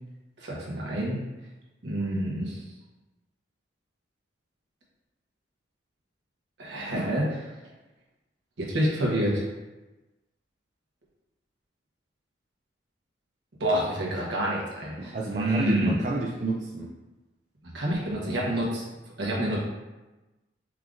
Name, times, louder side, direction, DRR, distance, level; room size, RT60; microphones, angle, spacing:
voice 1, 0.4-1.2 1.8-2.6 6.6-7.4 8.6-9.5 13.6-15.9 17.7-18.8 19.2-19.6, right 1 dB, 70° right, -4 dB, 1.1 m, -27 dB
voice 2, 15.0-16.9, right 3 dB, 40° right, -3 dB, 0.4 m, -30 dB
4.6 x 3.7 x 2.5 m, 1.1 s
head